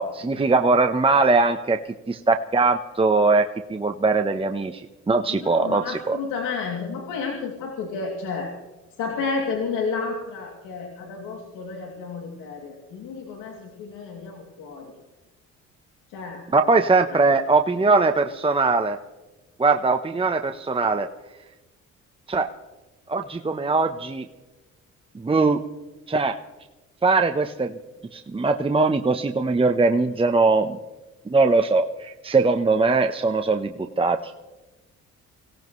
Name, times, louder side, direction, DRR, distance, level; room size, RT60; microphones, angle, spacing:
voice 1, 0.0-1.8 2.1-4.8 5.1-6.2 16.5-19.0 19.6-21.1 22.3-22.5 23.1-24.3 25.1-25.6 26.1-26.4 27.0-27.8 28.1-30.8 31.3-34.3, right 3 dB, 15° right, 6 dB, 0.9 m, -21 dB
voice 2, 5.3-8.5 9.0-14.9 16.1-16.4 17.1-17.2, left 4 dB, 85° left, 0 dB, 2.8 m, -31 dB
24.0 x 17.5 x 3.2 m, 1.1 s
supercardioid pair, 75°, 31 cm